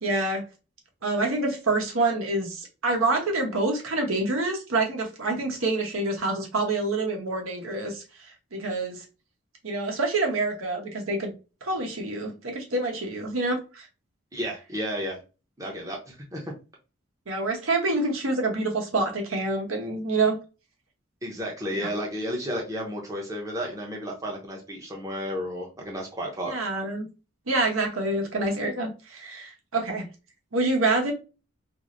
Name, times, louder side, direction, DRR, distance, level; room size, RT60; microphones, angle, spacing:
voice 1, 0.0-0.4 1.0-9.0 9.6-11.3 11.6-13.9 17.3-20.4 21.7-21.9 26.5-27.1 27.5-30.1 30.5-31.1, right 2 dB, 80° right, 2 dB, 1.0 m, -27 dB
voice 2, 14.3-15.2 15.6-16.5 21.2-26.5, equal, 15° right, -1 dB, 0.7 m, -32 dB
4.7 x 2.0 x 2.5 m, 0.31 s
head